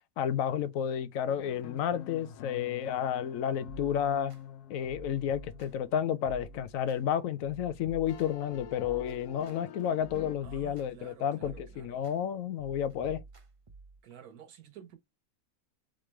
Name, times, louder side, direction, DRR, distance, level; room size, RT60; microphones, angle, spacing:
voice 1, 0.2-4.3 4.7-13.2, left 9 dB, 70° left, 0.9 m, -31 dB
sound 1, 1.3-7.8 8.1-10.4, left 10 dB, 90° left, 1.1 m, -47 dB
sound 2, 3.7-4.4 4.8-5.9 6.2-7.0 7.4-9.6 10.0-11.1 11.4-12.2 12.6-14.0, right 3 dB, 45° right, 0.4 m, -50 dB
voice 2, 10.4-12.0 14.0-15.0, right 9 dB, 80° right, 1.5 m, -52 dB
3.7 x 3.3 x 4.3 m
omnidirectional pair, 1.6 m